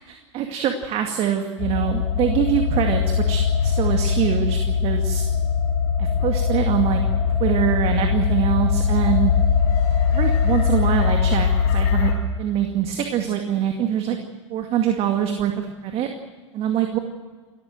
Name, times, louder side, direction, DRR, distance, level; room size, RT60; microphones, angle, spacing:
voice 1, 0.1-3.0 3.3-5.2 6.0-7.0 7.4-9.3 10.1-12.1 12.4-14.2 14.5-16.1 16.5-17.0, right 10 dB, 40° right, 5 dB, 2.2 m, -24 dB
sound 1, 1.6-12.1, left 6 dB, 50° left, 5.6 m, -21 dB
29.0 x 14.0 x 7.7 m, 1.5 s
hypercardioid pair, 100°, 16 cm